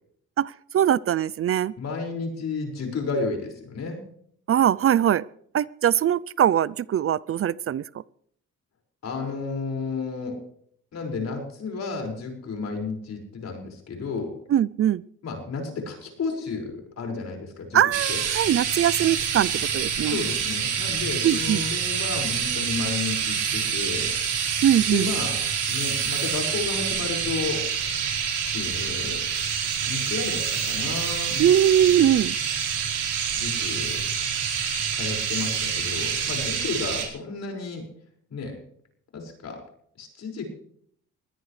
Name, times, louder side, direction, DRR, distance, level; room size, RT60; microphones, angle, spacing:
voice 1, 0.4-1.7 4.5-5.2 5.5-7.8 14.5-15.0 17.7-20.2 21.2-21.7 24.6-25.1 31.4-32.4, right 10 dB, 50° right, 20 dB, 0.5 m, -21 dB
voice 2, 1.8-4.0 9.0-10.4 10.9-14.4 15.2-17.8 18.1-18.2 19.9-24.1 24.9-25.4 25.7-28.0 28.3-29.2 29.6-31.5 33.3-34.0 34.9-37.9 38.3-38.6 39.1-39.6 40.0-40.5, left 4 dB, 60° left, 2 dB, 5.7 m, -32 dB
sound 1, 17.9-37.1, right 7 dB, 80° right, 5.0 m, -27 dB
22.5 x 17.0 x 3.3 m, 0.66 s
cardioid pair, 90°, 30 cm